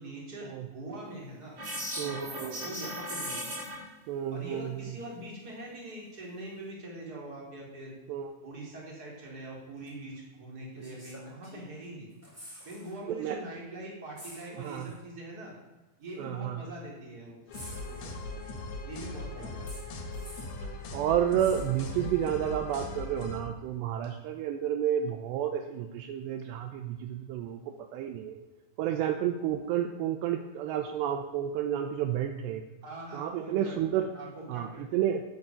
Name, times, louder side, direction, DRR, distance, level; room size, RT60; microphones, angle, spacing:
voice 1, 0.0-1.6 2.0-3.4 4.3-7.9 8.4-12.1 12.6-15.5 16.0-18.5 18.8-19.7 32.8-33.8 34.1-34.9, right 1 dB, 20° right, -3 dB, 3.9 m, -43 dB
sound 1, 1.6-3.8, equal, 45° right, 7.7 m, -37 dB
voice 2, 2.0-2.7 4.1-4.8 8.1-8.3 13.1-13.4 14.6-14.9 16.2-16.6 20.6-28.4 28.8-32.6 33.1-34.1 34.5-35.2, right 10 dB, 80° right, 6 dB, 2.8 m, -31 dB
sound 2, 9.9-10.0 10.7-11.8 12.1-13.0 13.3-13.4 14.1-15.0 16.0-16.1 17.5-18.6 19.7-20.6 21.4-22.3 24.0-24.1, equal, 5° right, 3.7 m, -49 dB
sound 3, 17.5-23.4, left 2 dB, 75° left, 4.3 m, -40 dB
13.0 x 8.0 x 9.0 m, 1.2 s
omnidirectional pair, 5.2 m